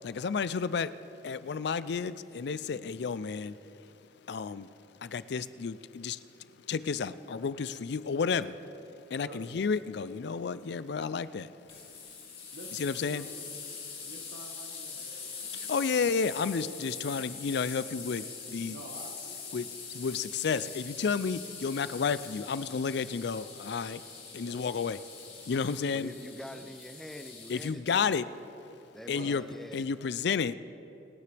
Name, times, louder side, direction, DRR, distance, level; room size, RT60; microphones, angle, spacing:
voice 1, 0.0-0.9 1.2-3.6 4.3-4.7 5.0-6.2 6.7-8.5 9.1-11.5 12.7-13.3 15.5-18.8 19.5-24.0 24.3-25.0 25.5-26.1 27.5-28.3 29.1-29.4 29.7-30.5, left 5 dB, 65° left, 15 dB, 0.4 m, -31 dB
voice 2, 2.7-3.1 6.3-6.5 9.2-9.5 12.5-13.3 14.0-16.7 17.2-17.5 18.6-20.3 24.4-24.6 26.3-26.8 29.0-29.4, right 2 dB, 80° right, 2 dB, 1.7 m, -51 dB
sound 1, 11.7-27.7, left 5 dB, 35° left, 2.9 m, -43 dB
voice 3, 25.9-28.2 28.9-29.9, equal, ahead, 8 dB, 0.5 m, -45 dB
27.0 x 9.8 x 3.4 m, 2.9 s
head